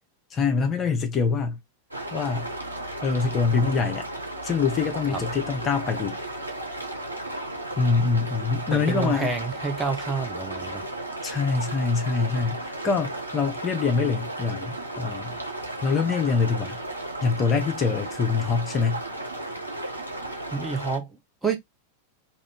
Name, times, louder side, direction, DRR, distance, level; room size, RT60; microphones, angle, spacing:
voice 1, 0.3-1.6 2.1-2.5 3.0-4.1 4.4-6.2 7.8-9.3 11.2-15.4 15.8-16.8 17.2-19.0, left 5 dB, 25° left, 0.6 m, -24 dB
sound 1, 1.9-21.0, right 1 dB, 85° right, 0.8 m, -34 dB
voice 2, 8.7-10.8 20.5-21.1 21.4-21.6, right 4 dB, 10° right, 0.7 m, -28 dB
2.5 x 2.4 x 3.4 m
figure-of-eight pair, 90°, 0 cm